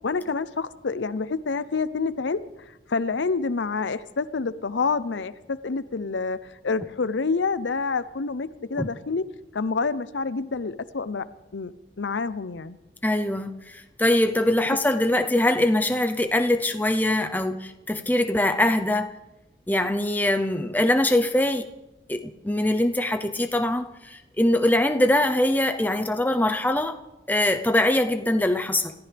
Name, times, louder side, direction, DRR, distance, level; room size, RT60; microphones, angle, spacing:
voice 1, 0.0-2.6 2.9-6.4 6.6-9.2 9.5-11.3 11.5-12.8, left 4 dB, 75° left, 15 dB, 0.6 m, -28 dB
voice 2, 13.0-19.1 19.7-21.7 22.1-27.0 27.3-28.9, left 1 dB, 10° left, 7 dB, 0.6 m, -23 dB
29.5 x 14.5 x 3.4 m, 0.96 s
head